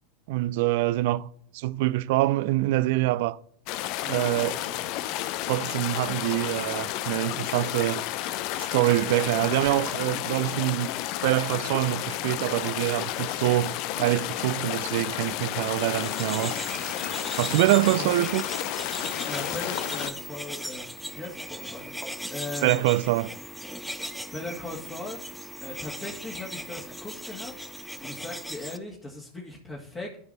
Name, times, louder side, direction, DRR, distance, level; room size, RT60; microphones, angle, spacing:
voice 1, 0.3-1.3 1.5-3.4 4.1-4.6 5.5-8.0 8.6-10.9 11.2-16.6 17.4-18.4 22.6-23.3, right 17 dB, 65° right, 0.4 m, -25 dB
sound 1, 3.7-20.1, left 13 dB, 55° left, 0.6 m, -31 dB
voice 2, 4.0-4.8 18.0-18.3 19.3-22.9 24.1-25.2 25.6-30.1, left 2 dB, 20° left, 2.1 m, -39 dB
sound 2, 15.5-28.8, equal, ahead, 0.6 m, -38 dB
13.0 x 5.1 x 4.1 m
hypercardioid pair, 95°, 0 cm